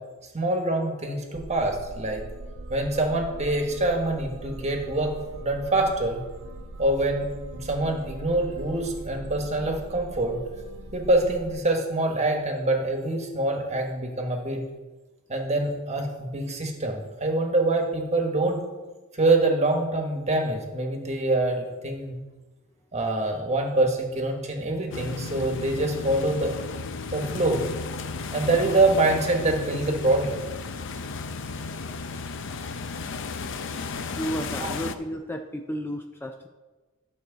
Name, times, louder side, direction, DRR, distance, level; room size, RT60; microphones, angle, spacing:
voice 1, 0.3-2.2 2.7-5.1 5.4-6.2 6.8-10.4 10.9-14.7 15.3-18.6 19.2-22.2 22.9-26.5 27.1-27.6 28.3-30.4 34.6-34.7, right 2 dB, 35° right, 2 dB, 1.4 m, -25 dB
sound 1, 1.3-11.5, right 1 dB, 65° right, 0.6 m, -41 dB
sound 2, 24.9-35.0, left 4 dB, 65° left, 0.6 m, -34 dB
voice 2, 34.1-36.5, equal, 10° left, 4 dB, 0.4 m, -32 dB
11.5 x 6.3 x 4.0 m, 1.2 s
head